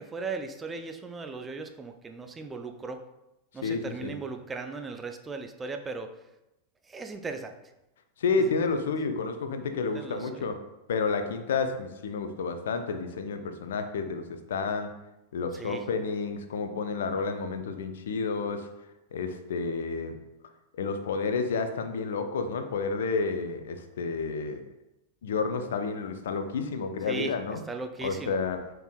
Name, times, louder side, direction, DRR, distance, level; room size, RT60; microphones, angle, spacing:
voice 1, 0.0-3.0 3.5-6.2 6.9-7.6 8.4-8.5 9.9-10.4 15.5-15.8 27.1-28.4, right 4 dB, 15° right, 6 dB, 0.4 m, -37 dB
voice 2, 3.6-4.1 8.2-10.6 10.9-14.9 15.3-18.7 19.1-20.1 20.8-24.6 25.2-27.6 28.0-28.6, left 4 dB, 60° left, 8 dB, 0.4 m, -30 dB
4.3 x 3.3 x 2.3 m, 0.92 s
figure-of-eight pair, 90°, 0 cm